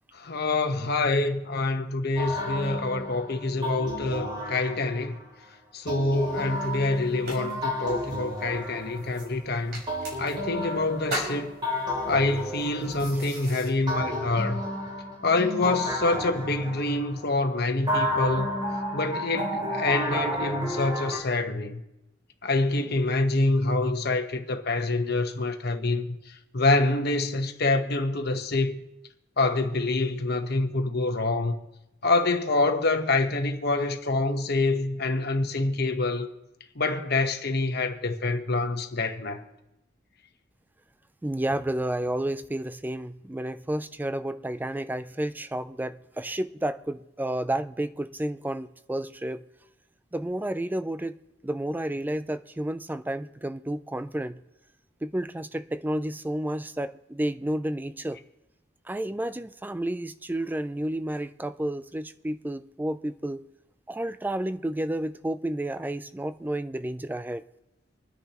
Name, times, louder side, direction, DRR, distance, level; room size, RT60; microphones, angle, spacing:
voice 1, 0.1-5.2 5.7-9.8 10.2-11.5 12.1-14.6 15.2-18.6 18.9-21.8 22.4-26.1 26.5-28.8 29.4-31.6 32.0-36.3 36.8-39.4, left 2 dB, 55° left, 1.2 m, -26 dB
sound 1, 2.2-5.2 5.9-9.4 9.9-13.4 13.9-17.3 17.9-21.2, left 1 dB, 25° right, 3.2 m, -32 dB
sound 2, 6.1-13.7, right 1 dB, 55° right, 5.2 m, -41 dB
voice 2, 41.2-49.4 50.1-51.2 51.4-54.4 55.0-58.2 58.9-63.4 63.9-67.4, right 1 dB, 10° right, 0.4 m, -31 dB
26.0 x 10.0 x 3.0 m
head